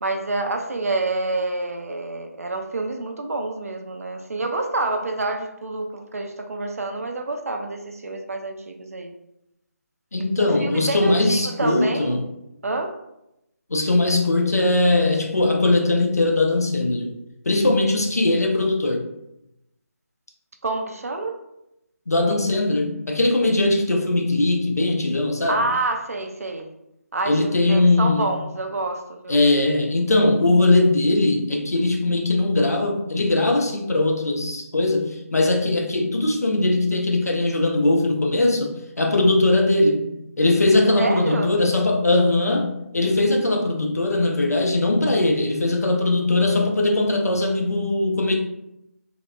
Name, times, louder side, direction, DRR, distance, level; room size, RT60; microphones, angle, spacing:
voice 1, 0.0-9.1 10.4-12.2 12.6-13.0 20.6-21.4 25.5-26.7 27.1-29.4 41.0-41.5, right 2 dB, 65° right, 4 dB, 0.4 m, -28 dB
voice 2, 10.1-12.2 13.7-17.1 17.5-19.1 22.1-25.6 27.3-28.2 29.3-40.1 40.4-48.4, left 2 dB, 85° left, 3 dB, 0.5 m, -20 dB
2.8 x 2.0 x 2.3 m, 0.85 s
figure-of-eight pair, 155°, 8 cm